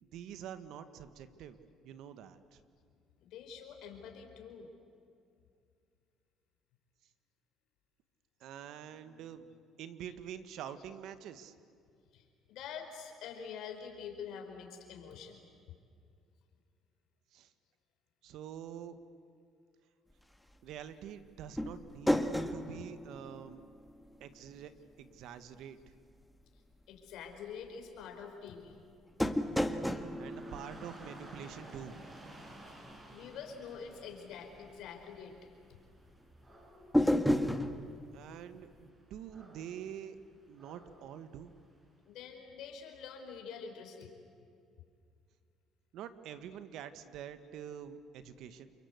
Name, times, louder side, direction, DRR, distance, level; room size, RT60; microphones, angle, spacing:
voice 1, 0.0-2.6 8.4-9.5 9.8-11.5 17.3-17.5 18.2-19.0 20.6-23.7 24.2-25.8 30.0-32.0 38.1-40.2 40.5-41.5 45.9-48.7, right 9 dB, 70° right, 11 dB, 1.6 m, -46 dB
voice 2, 3.2-4.7 8.7-9.5 10.8-10.9 12.1-15.4 22.8-22.9 26.9-28.8 32.6-35.3 42.1-44.1, left 6 dB, 75° left, 4 dB, 4.8 m, -47 dB
sound 1, 21.6-24.2 24.5-24.6 29.2-31.7 36.9-37.8, equal, 5° left, 1.7 m, -32 dB
Dog / Rain, 29.8-42.0, right 1 dB, 25° right, 7.6 m, -55 dB
29.0 x 23.5 x 8.3 m, 2.4 s
supercardioid pair, 80°, 0 cm